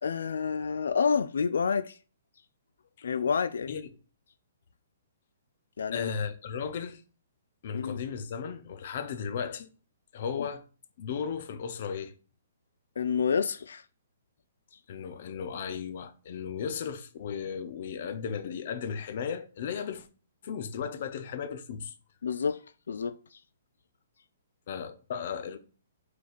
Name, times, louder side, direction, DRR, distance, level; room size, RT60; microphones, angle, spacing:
voice 1, 0.0-2.0 3.0-3.7 5.8-6.1 7.7-8.0 10.4-10.5 13.0-13.8 22.2-22.6 22.9-23.4, left 6 dB, 85° left, 0.4 m, -29 dB
voice 2, 5.9-7.0 7.6-9.7 10.1-10.6 11.0-12.1 14.9-20.1 20.4-21.9 24.7-25.6, left 7 dB, 40° left, 0.7 m, -35 dB
5.2 x 4.1 x 5.1 m
hypercardioid pair, 175°, 0 cm